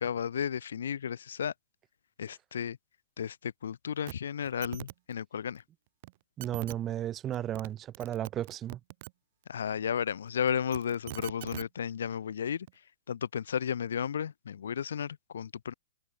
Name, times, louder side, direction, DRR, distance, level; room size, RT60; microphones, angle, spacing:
voice 1, 0.0-1.5 2.2-2.8 3.2-5.6 9.5-12.7 13.1-15.7, left 8 dB, 75° left, 0.8 m, -33 dB
sound 1, 4.1-4.2 4.4-4.9 6.0-6.1 6.4-6.8 7.3-7.7 7.9-9.1 10.5-11.7 12.7-12.8, right 19 dB, 45° right, 3.4 m, -42 dB
voice 2, 6.4-8.8, right 11 dB, 20° right, 1.6 m, -34 dB
hypercardioid pair, 140°, 0 cm